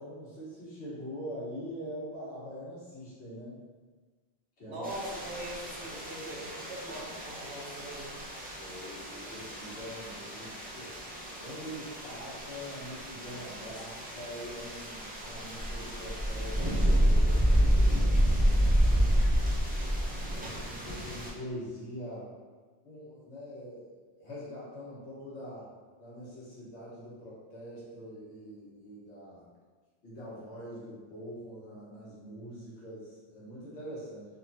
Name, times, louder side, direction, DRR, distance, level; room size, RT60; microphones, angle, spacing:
voice 1, 0.0-3.6 4.6-4.9 8.6-10.9 11.4-19.5 20.3-22.3 22.8-25.7 26.0-29.5 30.0-34.3, equal, 85° left, -8 dB, 1.5 m, -44 dB
voice 2, 4.7-8.1, right 1 dB, 85° right, -4 dB, 1.1 m, -41 dB
sound 1, 4.8-21.3, equal, 10° right, 0.4 m, -29 dB
3.5 x 3.1 x 2.6 m, 1.4 s
omnidirectional pair, 1.1 m